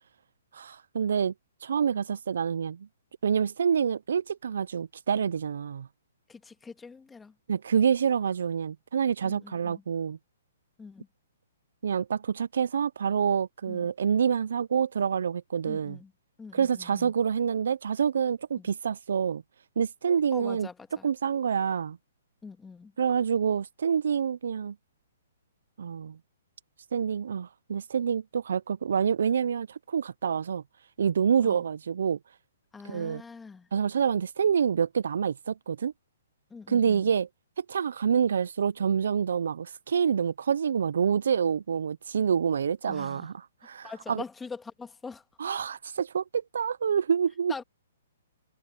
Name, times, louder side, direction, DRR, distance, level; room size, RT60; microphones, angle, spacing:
voice 1, 0.5-1.3 1.6-2.9 3.2-5.9 7.5-10.2 11.8-16.0 16.5-19.4 19.8-20.7 21.0-22.0 23.0-24.7 25.8-26.2 26.9-30.6 31.0-32.2 32.8-33.2 33.7-35.9 36.7-37.3 37.6-44.2 45.4-47.5, right 7 dB, 70° right, 0.5 m, -27 dB
voice 2, 6.3-7.3 9.2-9.8 10.8-11.1 13.7-13.9 15.6-16.1 16.4-17.1 18.6-18.7 20.3-21.1 22.4-22.9 31.4-31.6 32.7-33.7 36.5-37.1 42.9-43.3 43.8-45.2 47.5-47.6, left 4 dB, 10° left, 1.9 m, -43 dB
hypercardioid pair, 135°, 0 cm